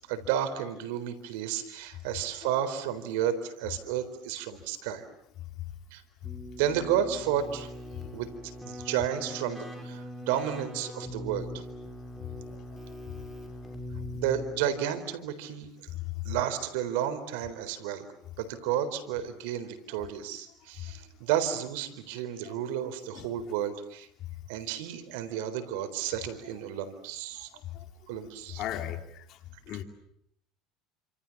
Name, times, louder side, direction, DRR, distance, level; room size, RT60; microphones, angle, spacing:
voice 1, 0.0-5.0 5.9-6.0 6.6-7.7 8.1-8.3 8.6-11.5 14.1-15.7 16.2-18.1 18.4-24.1 24.5-27.5 28.1-28.6, right 10 dB, 85° right, 11 dB, 3.9 m, -32 dB
Keyboard (musical), 6.2-14.9, equal, 10° right, 5.9 m, -42 dB
voice 2, 28.6-29.2 29.7-29.8, left 11 dB, 50° left, 5 dB, 4.1 m, -37 dB
29.5 x 27.0 x 7.3 m, 0.75 s
cardioid pair, 150°, 0 cm